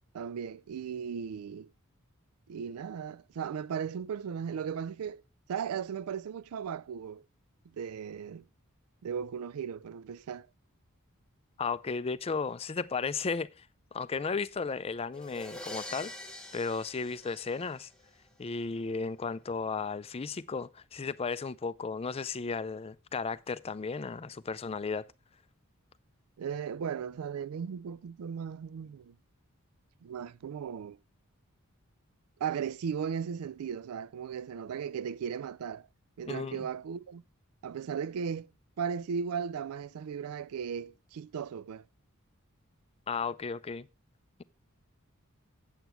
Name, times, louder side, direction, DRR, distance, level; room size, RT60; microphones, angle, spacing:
voice 1, 0.1-1.7 2.5-5.2 5.5-7.2 7.8-8.5 9.0-10.5 26.4-29.1 30.0-31.0 32.4-35.9 36.2-37.2 37.6-38.5 38.8-41.9, right 7 dB, 85° right, 0.4 m, -36 dB
voice 2, 11.6-16.1 16.5-17.9 18.4-25.1 36.3-36.7 43.1-43.9, left 4 dB, 25° left, 0.4 m, -34 dB
sound 1, 15.1-18.1, left 1 dB, 5° left, 1.1 m, -45 dB
8.1 x 8.1 x 4.4 m
head